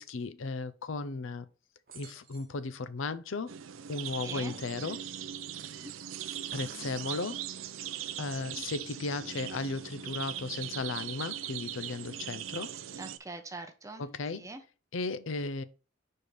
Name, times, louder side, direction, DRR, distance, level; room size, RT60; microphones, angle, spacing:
voice 1, 0.0-1.5 1.9-3.5 3.9-5.0 6.5-7.5 8.2-12.8 14.0-14.5 14.9-15.6, left 3 dB, 80° left, 0.6 m, -35 dB
sound 1, 1.9-2.6 3.9-4.8 6.3-7.3, right 5 dB, 50° right, 1.0 m, -53 dB
sound 2, 3.5-13.2, right 10 dB, 85° right, 0.5 m, -40 dB
voice 2, 4.2-4.6 5.6-6.0 8.2-8.6 12.9-14.0 14.4-14.6, right 2 dB, 15° right, 0.7 m, -44 dB
4.9 x 4.4 x 5.1 m
head